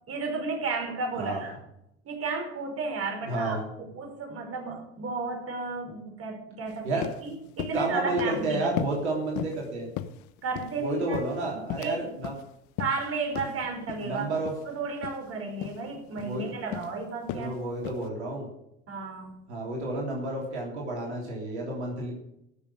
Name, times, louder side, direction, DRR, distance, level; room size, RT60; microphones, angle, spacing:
voice 1, 0.1-1.5 2.1-8.7 10.4-12.1 12.8-14.3 14.7-17.5 18.9-19.4, right 4 dB, 45° right, 3 dB, 5.3 m, -33 dB
voice 2, 3.3-3.6 6.8-7.4 7.7-9.9 10.8-12.3 14.0-14.5 16.2-16.4 17.3-18.5 19.5-22.1, right 2 dB, 90° right, -1 dB, 3.4 m, -31 dB
sound 1, 6.7-6.8 7.0-7.2 7.6-7.8 8.2-8.4 8.8-9.0 9.4-9.6 10.0-10.8 11.1-12.0 12.2-12.4 12.8-13.0 13.4-13.5 13.9-14.1 14.5-14.6 15.0-15.2 15.6-15.8 16.2-16.4 16.7-16.9 17.3-17.5 17.8-18.1, left 12 dB, 60° left, 1.0 m, -35 dB
13.5 x 7.0 x 9.3 m, 0.80 s
hypercardioid pair, 75°, 33 cm